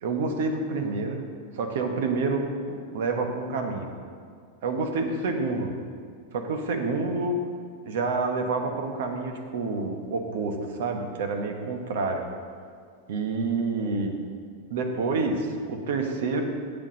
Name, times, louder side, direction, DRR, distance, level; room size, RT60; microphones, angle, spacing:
voice 1, 0.0-1.2 1.5-3.9 4.6-5.7 6.3-7.4 7.8-12.2 13.1-14.1 14.7-16.4, right 3 dB, 70° right, 4 dB, 1.2 m, -28 dB
7.6 x 7.4 x 5.2 m, 2.1 s
hypercardioid pair, 105°, 0 cm